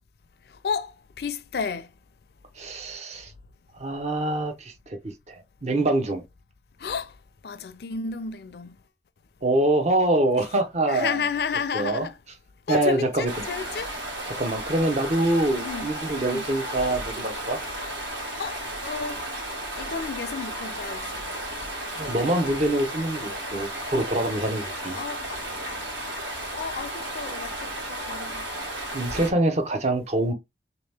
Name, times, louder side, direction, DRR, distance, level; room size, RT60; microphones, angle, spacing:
voice 1, 0.6-1.9 6.8-7.1 7.4-8.7 10.9-12.1 12.7-13.9 15.6-15.9 16.3-16.5 18.4-19.2 19.7-21.1 24.9-25.4 26.6-28.5, left 5 dB, 60° left, 0.4 m, -32 dB
voice 2, 2.6-3.3 3.8-5.0 5.3-6.2 9.4-11.2 11.7-12.1 12.7-13.4 14.3-17.6 22.0-25.0 28.9-30.3, right 1 dB, 40° right, 0.7 m, -25 dB
Stream, 13.3-29.3, right 1 dB, 90° right, 2.0 m, -34 dB
3.5 x 2.9 x 3.3 m
head